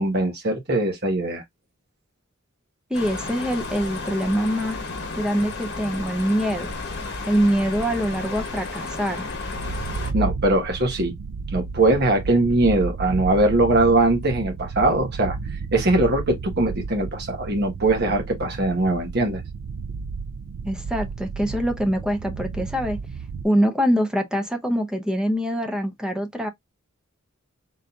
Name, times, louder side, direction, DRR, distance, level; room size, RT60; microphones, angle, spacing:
voice 1, 0.0-1.4 10.1-11.1 11.5-15.4 15.7-19.4, right 2 dB, 50° right, 1.2 m, -21 dB
sound 1, 2.9-10.1, left 3 dB, 55° left, 1.1 m, -32 dB
voice 2, 2.9-4.8 5.1-6.7 7.3-9.3 20.6-23.0 23.4-26.5, equal, 5° right, 0.7 m, -24 dB
sound 2, 9.6-23.5, right 4 dB, 75° right, 0.4 m, -32 dB
4.1 x 3.7 x 2.3 m
head